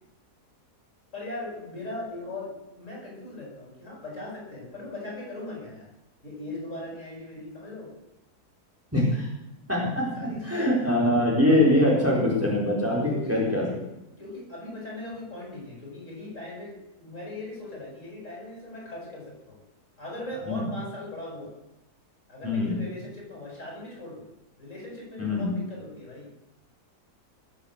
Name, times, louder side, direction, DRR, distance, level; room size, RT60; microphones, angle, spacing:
voice 1, 1.1-5.9 6.2-7.9 9.8-9.9 10.1-10.9 13.0-13.4 14.2-19.6 20.0-21.5 22.3-24.2 24.6-26.3, left 2 dB, 50° left, -3 dB, 8.1 m, -39 dB
voice 2, 8.9-9.3 9.7-13.8 20.5-20.6 22.4-22.8 25.2-25.5, left 1 dB, 10° right, -4 dB, 4.3 m, -23 dB
20.0 x 8.0 x 8.0 m, 0.91 s
omnidirectional pair, 1.7 m